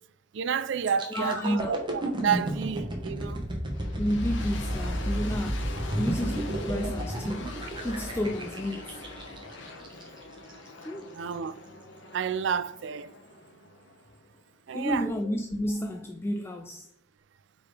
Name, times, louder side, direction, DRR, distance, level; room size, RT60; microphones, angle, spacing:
voice 1, 0.3-3.4 11.1-11.6 12.1-13.1 14.7-15.1, right 7 dB, 65° right, 0.4 m, -30 dB
sound 1, 0.8-10.7 11.1-11.3, right 1 dB, 25° right, 1.2 m, -32 dB
voice 2, 1.1-1.7 4.0-5.7 6.0-7.5 7.8-9.0 10.8-11.1 14.7-16.9, equal, 10° left, 0.3 m, -31 dB
sound 2, 3.7-14.6, left 3 dB, 70° left, 1.0 m, -44 dB
5.1 x 4.7 x 4.9 m
head